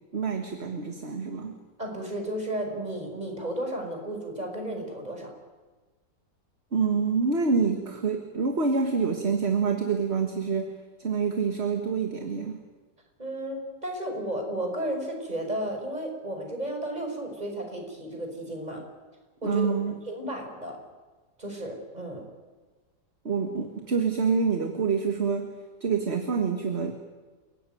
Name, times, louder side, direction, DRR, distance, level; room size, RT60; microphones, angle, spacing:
voice 1, 0.1-1.6 6.7-12.6 19.4-19.9 23.2-25.5 25.8-26.9, right 5 dB, 40° right, 5 dB, 1.9 m, -27 dB
voice 2, 1.8-5.3 13.2-18.8 19.4-20.8 21.4-22.3, right 1 dB, 20° right, 2 dB, 5.6 m, -33 dB
29.5 x 17.0 x 9.3 m, 1.3 s
omnidirectional pair, 1.9 m